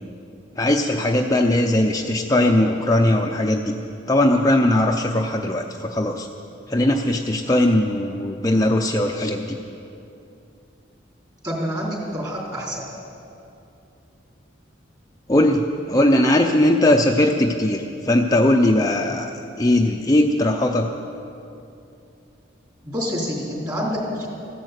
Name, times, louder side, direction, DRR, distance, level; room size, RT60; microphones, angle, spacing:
voice 1, 0.6-3.8 4.1-6.3 6.7-9.6 15.3-19.3 19.6-20.9, left 1 dB, 20° left, 1 dB, 0.6 m, -19 dB
voice 2, 11.4-12.8 22.8-24.3, equal, 20° right, -3 dB, 3.5 m, -27 dB
15.0 x 11.0 x 8.1 m, 2.7 s
head